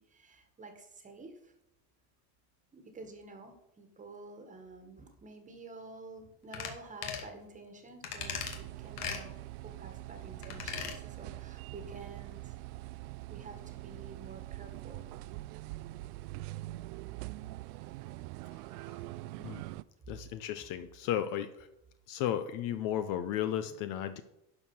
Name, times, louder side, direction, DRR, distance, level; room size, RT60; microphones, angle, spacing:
voice 1, 0.0-1.5 2.7-9.3 9.6-12.6 13.3-15.3, right 3 dB, 15° right, 6 dB, 1.6 m, -50 dB
sound 1, 6.5-6.7 7.0-7.3 8.0-8.6 9.0-9.2 10.4-11.0 11.3-11.4, left 7 dB, 85° left, 2.3 m, -38 dB
sound 2, 8.2-19.8, right 18 dB, 70° right, 0.6 m, -44 dB
voice 2, 20.1-21.7 22.1-24.2, left 10 dB, 45° left, 11 dB, 0.7 m, -34 dB
11.5 x 4.8 x 7.0 m, 0.85 s
supercardioid pair, 150°, 46 cm